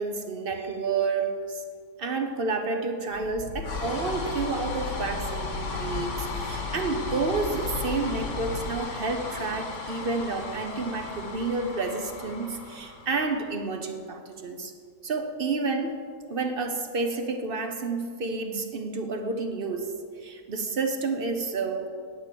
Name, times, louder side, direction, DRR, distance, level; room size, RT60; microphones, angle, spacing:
voice 1, 0.0-1.6 2.0-14.7 15.0-16.0 16.3-21.9, right 3 dB, 45° right, 6 dB, 0.8 m, -30 dB
sound 1, 3.1-13.6, left 4 dB, 55° left, 1.5 m, -34 dB
9.7 x 8.8 x 6.9 m, 2.1 s
omnidirectional pair, 1.6 m